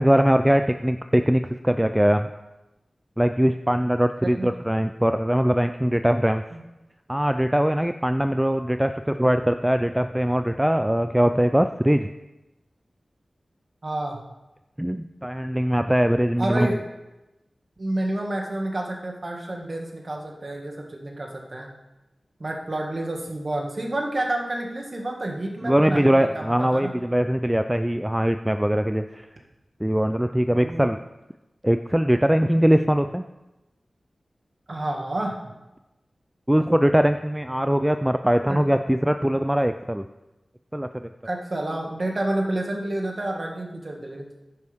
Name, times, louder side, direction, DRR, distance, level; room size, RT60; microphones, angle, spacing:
voice 1, 0.0-2.3 3.2-6.4 7.1-12.1 14.8-16.8 25.6-29.3 29.8-31.0 31.6-33.2 36.5-40.0 40.7-40.9, equal, 10° right, 8 dB, 0.4 m, -21 dB
voice 2, 13.8-14.2 16.4-16.8 17.8-21.7 22.4-26.9 30.5-30.8 34.7-35.5 38.5-38.6 41.2-44.3, right 1 dB, 50° right, 0 dB, 2.0 m, -29 dB
11.0 x 9.7 x 3.6 m, 0.99 s
wide cardioid pair, 60°, 0 cm